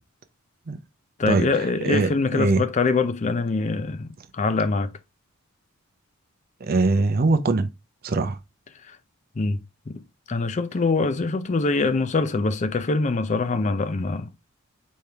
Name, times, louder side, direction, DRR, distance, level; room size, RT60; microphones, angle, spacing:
voice 1, 1.2-4.9 9.4-9.6 9.9-14.3, left 3 dB, 35° left, 0.4 m, -24 dB
voice 2, 1.8-2.7 6.6-7.7 8.0-8.4, right 3 dB, 45° right, 0.6 m, -22 dB
4.3 x 3.4 x 3.4 m
head